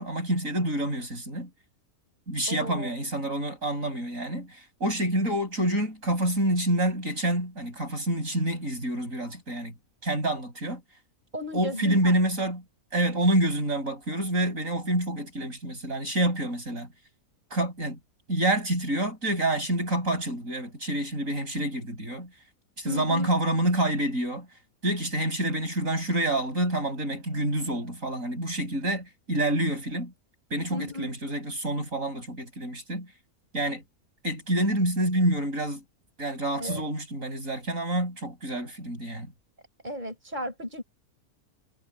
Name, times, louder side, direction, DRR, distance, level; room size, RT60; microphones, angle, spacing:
voice 1, 0.0-1.5 2.3-9.7 10.0-10.8 11.5-12.6 12.9-16.9 17.5-18.0 18.3-22.3 22.8-24.5 24.8-30.1 30.5-33.1 33.5-33.8 34.2-35.8 36.2-39.3, right 1 dB, 60° right, 8.1 m, -27 dB
voice 2, 2.5-2.9 11.3-12.1 22.9-23.3 30.7-31.1 36.6-36.8 39.8-40.8, left 1 dB, 30° right, 7.2 m, -34 dB
omnidirectional pair, 1.6 m